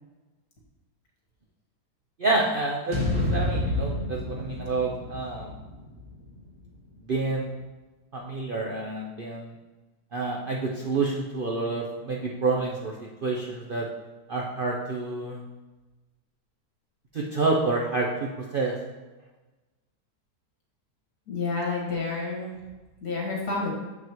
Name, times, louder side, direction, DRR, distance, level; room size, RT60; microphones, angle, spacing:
voice 1, 2.2-5.5 7.0-7.5 8.1-9.5 10.1-12.9 13.2-13.9 14.3-15.4 17.1-18.7, right 3 dB, 75° right, -2 dB, 0.4 m, -28 dB
sound 1, 2.9-7.1, left 2 dB, 25° right, 1.4 m, -30 dB
voice 2, 21.3-22.5 23.0-23.7, left 3 dB, 65° left, -2 dB, 2.1 m, -29 dB
7.3 x 5.8 x 3.0 m, 1.2 s
omnidirectional pair, 1.8 m